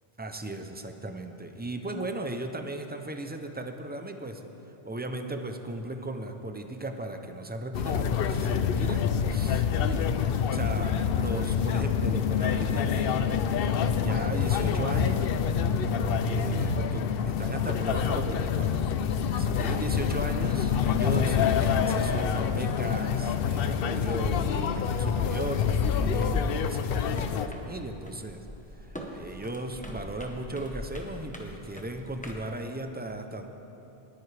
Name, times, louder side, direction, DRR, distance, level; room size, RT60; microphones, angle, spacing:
voice 1, 0.2-4.4 4.8-10.1 10.5-13.5 14.0-15.3 16.3-17.1 17.4-18.8 19.4-28.4 28.8-33.5, right 1 dB, 15° right, 6 dB, 0.4 m, -36 dB
sound 1, 7.7-27.5, left 7 dB, 65° left, 0.7 m, -26 dB
sound 2, 26.9-32.5, equal, 10° left, 1.0 m, -43 dB
20.0 x 9.2 x 3.4 m, 2.9 s
omnidirectional pair, 1.1 m